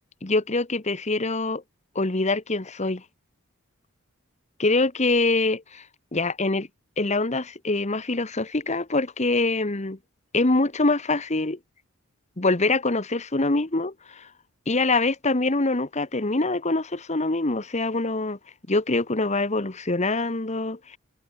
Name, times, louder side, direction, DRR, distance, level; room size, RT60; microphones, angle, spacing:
voice 1, 0.2-1.6 1.9-3.0 4.6-5.8 6.1-6.7 7.0-10.0 10.3-11.6 12.4-14.3 14.7-18.4 18.7-21.0, left 2 dB, 30° left, 1.3 m, -24 dB
head